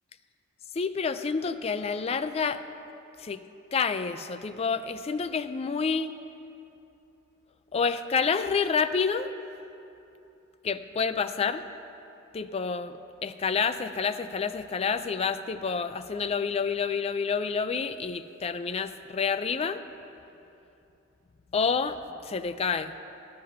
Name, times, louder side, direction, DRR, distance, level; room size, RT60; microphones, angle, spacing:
voice 1, 0.8-2.6 3.2-3.4 3.7-6.1 7.7-9.3 10.6-11.6 12.3-19.8 21.5-22.9, left 5 dB, 30° left, 11 dB, 0.3 m, -28 dB
11.5 x 7.5 x 5.7 m, 2.8 s
head